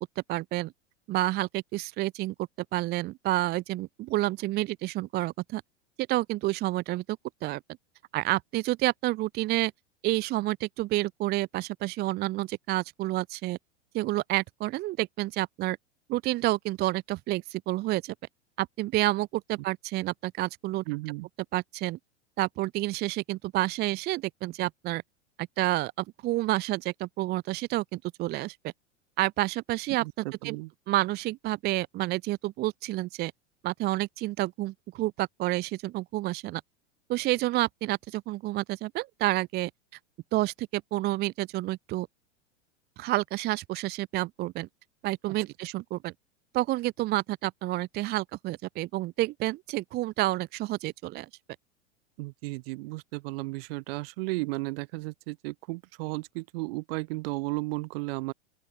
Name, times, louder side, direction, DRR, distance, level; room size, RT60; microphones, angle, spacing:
voice 1, 0.3-0.7 1.1-2.3 2.7-5.6 6.1-7.0 7.4-7.6 8.1-9.7 10.0-13.6 13.9-15.8 16.1-18.1 18.6-20.8 21.5-22.0 22.4-25.0 25.4-28.7 29.2-30.6 30.9-33.3 33.6-36.6 37.1-39.7 40.3-42.1 43.0-44.7 45.0-46.1 46.5-51.3, right 17 dB, 25° right, 0.6 m, -29 dB
voice 2, 20.9-21.3 30.0-30.7 45.3-45.4 52.2-58.3, right 25 dB, 50° right, 1.7 m, -34 dB
open air
figure-of-eight pair, 95°, 37 cm